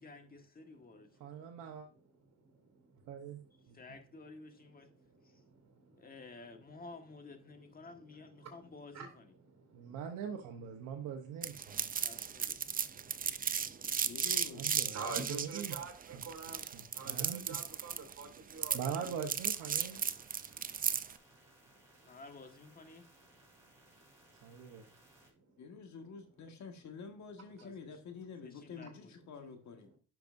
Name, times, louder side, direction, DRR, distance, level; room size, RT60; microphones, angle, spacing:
voice 1, 0.0-1.1 3.7-4.9 5.2-5.4 6.0-9.3 12.0-12.9 22.0-23.1 27.6-28.0 28.4-29.2, left 3 dB, 30° left, 1.6 m, -53 dB
voice 2, 1.2-1.9 3.1-3.4 3.7-3.8 9.7-11.9 14.5-15.0 15.3-15.8 16.1-16.2 16.7-17.6 18.7-20.0 24.4-24.8, right 7 dB, 90° right, 1.0 m, -42 dB
voice 3, 2.3-3.1 3.7-3.8 5.0-6.1 8.3-8.7 8.9-9.1 9.4-10.0 10.9-11.0 11.6-19.1 21.3-21.4 21.7-21.9 23.5-24.0 24.3-25.6, right 4 dB, 60° right, 2.7 m, -49 dB
sound 1, 11.4-21.1, right 7 dB, 30° right, 0.5 m, -35 dB
voice 4, 14.0-14.7 25.6-29.9, left 5 dB, 65° left, 1.7 m, -48 dB
sound 2, 19.3-25.3, right 1 dB, 10° right, 4.5 m, -64 dB
10.5 x 5.9 x 2.6 m
cardioid pair, 90°, 30 cm